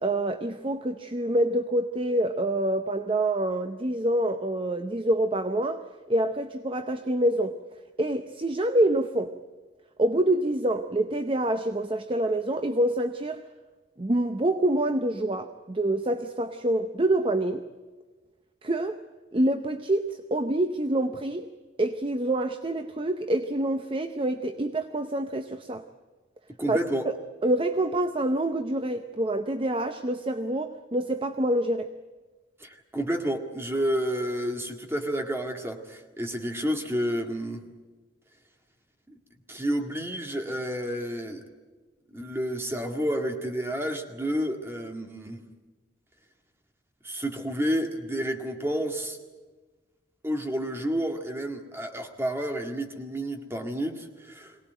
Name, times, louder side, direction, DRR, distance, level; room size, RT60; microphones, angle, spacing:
voice 1, 0.0-5.8 6.1-7.6 8.0-9.3 10.0-13.4 14.0-17.6 18.6-19.0 19.3-21.5 21.8-25.8 26.7-26.8 27.1-27.2 27.4-31.9, right 1 dB, 30° right, 8 dB, 0.7 m, -26 dB
voice 2, 26.6-27.1 32.6-37.6 39.1-39.2 39.5-41.4 42.1-45.4 47.0-49.2 50.2-54.6, equal, 15° right, 4 dB, 2.0 m, -30 dB
22.5 x 18.0 x 9.2 m, 1.3 s
head